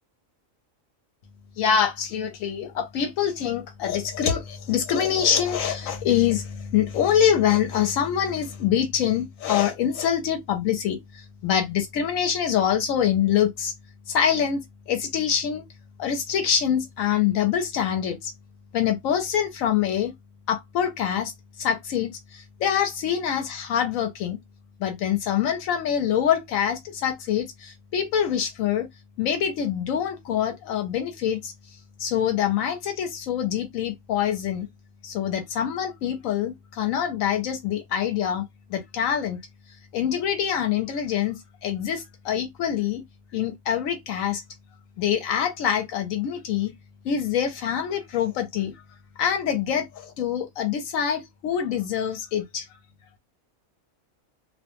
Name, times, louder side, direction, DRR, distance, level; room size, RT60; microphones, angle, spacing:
voice 1, 1.6-13.7 14.1-14.6 14.9-15.6 16.0-18.3 18.7-20.1 20.5-21.3 21.6-24.4 24.8-28.9 29.2-31.5 32.0-34.7 35.0-38.4 38.7-39.4 39.9-43.0 43.3-44.4 45.0-46.7 47.0-48.7 49.2-52.7, left 9 dB, 80° left, 1.0 m, -25 dB
2.4 x 2.2 x 2.9 m
omnidirectional pair, 1.4 m